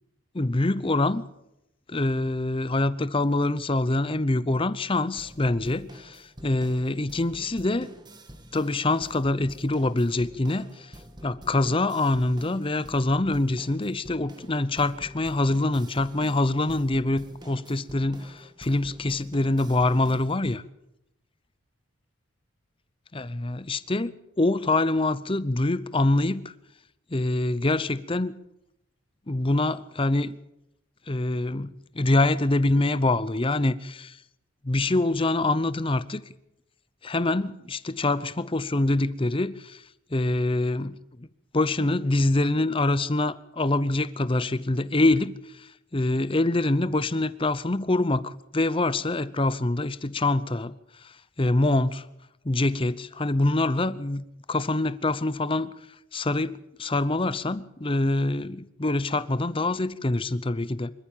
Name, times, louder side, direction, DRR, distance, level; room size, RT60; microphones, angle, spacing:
voice 1, 0.3-1.2 1.9-7.9 8.5-10.9 11.2-20.6 23.1-26.5 27.1-28.4 29.3-30.3 31.1-34.2 34.6-36.2 37.0-39.8 40.1-41.3 41.5-52.1 52.4-55.7 56.1-60.9, left 2 dB, 25° left, 16 dB, 0.7 m, -25 dB
sound 1, 5.2-20.5, equal, 20° right, 1.7 m, -47 dB
25.5 x 14.0 x 7.3 m, 0.84 s
head